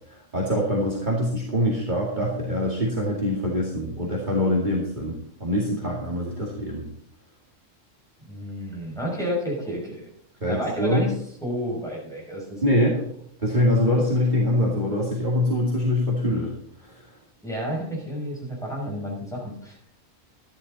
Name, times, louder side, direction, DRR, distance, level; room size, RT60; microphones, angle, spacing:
voice 1, 0.1-5.1 5.4-6.9 10.4-11.0 12.6-13.0 13.4-16.5 16.8-17.0, left 1 dB, 40° right, -4 dB, 2.4 m, -24 dB
voice 2, 8.3-10.1 10.5-11.1 11.4-12.8 17.4-19.8, equal, ahead, -4 dB, 6.3 m, -31 dB
13.5 x 11.0 x 4.1 m, 0.66 s
omnidirectional pair, 1.3 m